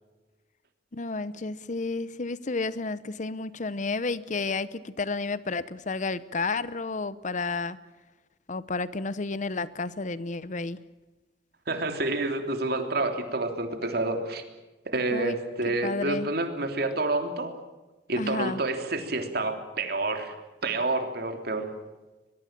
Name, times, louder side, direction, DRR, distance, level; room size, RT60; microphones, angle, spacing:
voice 1, 0.9-7.8 8.5-10.8 15.1-15.4 15.7-16.3 18.2-18.6, left 3 dB, 45° left, 17 dB, 0.8 m, -31 dB
voice 2, 11.7-14.4 14.8-17.5 18.1-20.3 20.6-21.7, right 2 dB, 60° right, 6 dB, 3.3 m, -28 dB
22.5 x 22.5 x 7.5 m, 1.1 s
head